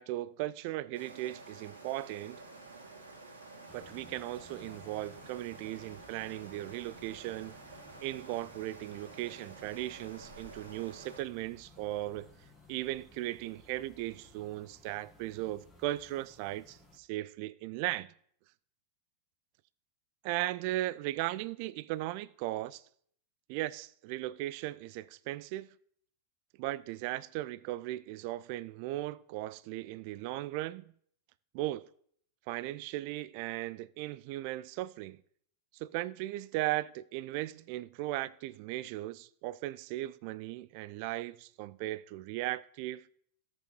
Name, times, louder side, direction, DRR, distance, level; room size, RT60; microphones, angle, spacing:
voice 1, 0.0-2.4 3.7-7.6 8.0-12.3 12.7-18.1 20.2-22.8 23.5-25.7 26.6-30.9 31.5-31.9 32.5-35.2 35.7-43.1, right 16 dB, 45° right, 0.3 m, -37 dB
sound 1, 0.9-11.2, right 3 dB, 65° right, 2.3 m, -51 dB
sound 2, 3.7-17.0, left 2 dB, 5° left, 1.4 m, -58 dB
15.5 x 5.4 x 3.0 m
figure-of-eight pair, 90°, 0 cm